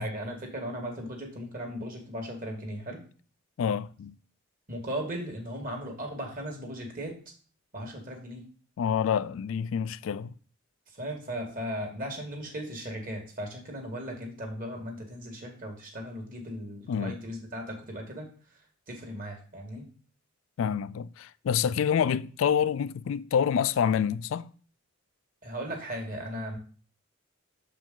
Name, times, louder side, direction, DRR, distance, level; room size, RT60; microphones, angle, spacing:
voice 1, 0.0-3.0 4.7-7.2 7.7-8.4 10.9-18.3 18.9-19.8 25.4-26.6, equal, 40° right, 1.7 m, -37 dB
voice 2, 3.6-4.1 8.8-10.3 16.9-17.2 20.6-24.5, left 7 dB, 70° left, 0.3 m, -27 dB
6.7 x 5.0 x 3.8 m
head